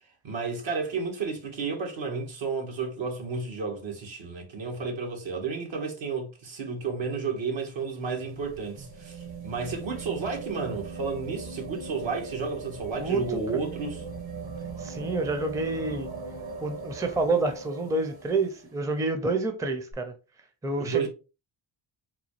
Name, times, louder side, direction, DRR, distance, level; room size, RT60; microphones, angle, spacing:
voice 1, 0.2-14.0 20.8-21.1, right 4 dB, 65° right, 1.4 m, -32 dB
sound 1, 7.7-18.7 19.9-20.0, right 4 dB, 45° right, 1.2 m, -40 dB
voice 2, 13.0-13.4 14.8-16.1 16.6-20.1 20.6-21.1, right 3 dB, 5° right, 0.5 m, -28 dB
4.1 x 2.3 x 3.0 m
cardioid pair, 75°, 50 cm